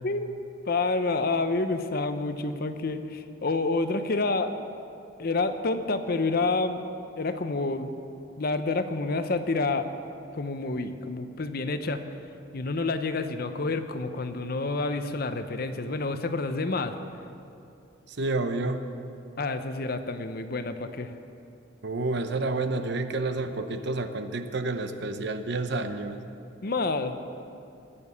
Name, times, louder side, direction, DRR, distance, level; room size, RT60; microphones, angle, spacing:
voice 1, 0.0-4.5 5.2-7.9 8.4-9.9 10.3-12.0 12.5-16.9 19.4-21.1 26.6-27.1, left 3 dB, 50° left, 9 dB, 0.7 m, -28 dB
voice 2, 18.1-18.8 21.8-26.2, right 2 dB, 55° right, 8 dB, 0.8 m, -29 dB
20.5 x 7.0 x 7.0 m, 2.6 s
head